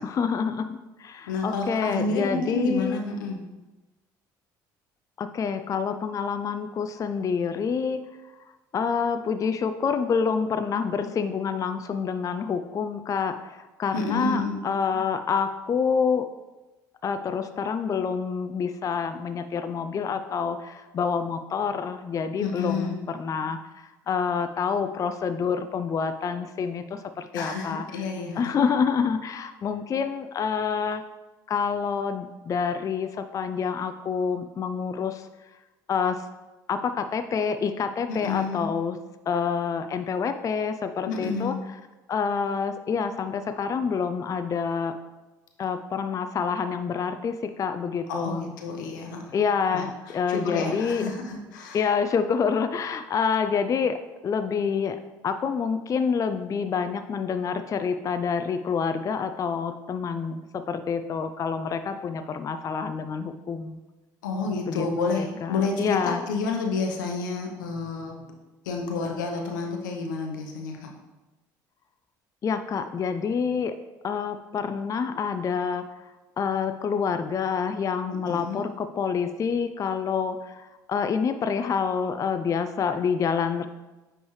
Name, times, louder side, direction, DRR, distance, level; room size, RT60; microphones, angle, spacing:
voice 1, 0.0-3.0 5.2-8.0 8.7-16.3 17.0-28.1 28.4-31.0 31.5-35.3 35.9-36.3 36.7-39.0 39.3-41.5 42.1-44.9 45.6-48.4 49.3-51.1 51.7-63.8 64.7-66.2 72.4-73.7 74.0-76.1 76.4-83.7, left 6 dB, 35° left, 9 dB, 0.4 m, -27 dB
voice 2, 1.3-3.4 13.9-14.6 22.4-23.0 27.3-28.6 38.1-38.7 41.1-41.6 48.1-49.4 49.7-51.9 64.2-68.2 68.6-70.9 78.0-78.6, left 3 dB, 85° left, 2 dB, 0.8 m, -30 dB
9.4 x 3.3 x 3.1 m, 1.1 s
hypercardioid pair, 65°, 10 cm